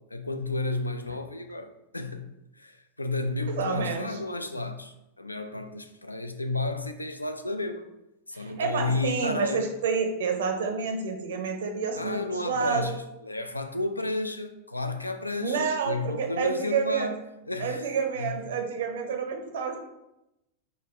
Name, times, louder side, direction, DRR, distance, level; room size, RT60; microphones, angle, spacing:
voice 1, 0.1-7.9 8.3-9.6 11.9-17.2 17.5-18.3, left 2 dB, 85° left, 8 dB, 0.3 m, -32 dB
voice 2, 3.6-4.2 8.3-13.0 15.4-17.1 17.6-19.8, right 5 dB, 60° right, 4 dB, 0.5 m, -29 dB
5.2 x 2.2 x 3.0 m, 0.91 s
figure-of-eight pair, 90°, 0 cm